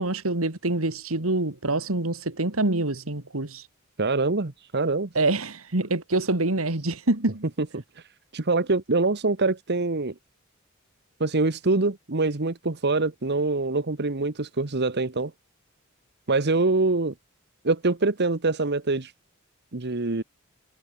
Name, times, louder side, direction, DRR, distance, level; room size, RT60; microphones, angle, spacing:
voice 1, 0.0-3.6 5.1-7.4, right 2 dB, 80° right, 2.4 m, -26 dB
voice 2, 4.0-5.1 7.7-7.8 8.3-10.1 11.2-15.3 16.3-17.1 17.6-19.1 19.7-20.2, right 3 dB, 55° right, 1.3 m, -24 dB
head